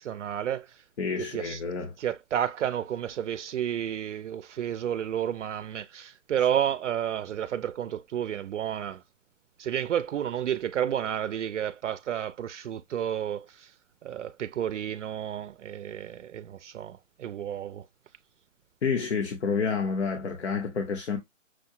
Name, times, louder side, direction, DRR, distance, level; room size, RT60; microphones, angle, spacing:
voice 1, 0.0-0.8 1.2-1.6 2.0-9.0 9.6-13.7 14.0-17.9, right 10 dB, 70° right, 0.5 m, -31 dB
voice 2, 1.0-1.9 18.8-21.2, left 5 dB, 60° left, 1.1 m, -29 dB
6.2 x 2.2 x 2.8 m
hypercardioid pair, 175°, 38 cm